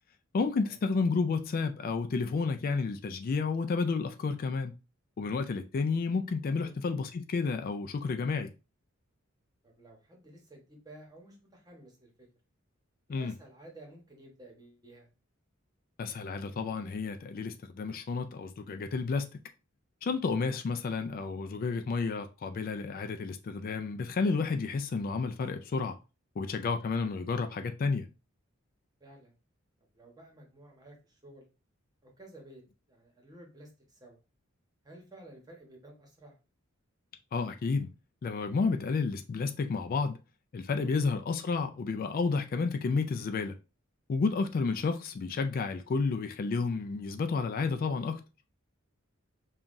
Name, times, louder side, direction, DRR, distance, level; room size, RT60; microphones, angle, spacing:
voice 1, 0.3-4.8 5.2-8.5 13.1-13.3 16.0-19.3 20.0-26.0 26.4-28.1 37.3-37.9 38.2-40.2 40.5-43.6 44.1-48.2, left 4 dB, 45° left, 0.3 m, -31 dB
voice 2, 9.6-12.3 13.1-15.1 20.0-20.2 29.0-29.4 29.9-31.4 32.0-32.6 32.9-34.2 34.8-36.4 40.8-40.9, right 1 dB, 20° right, 1.0 m, -53 dB
5.5 x 2.3 x 2.5 m
head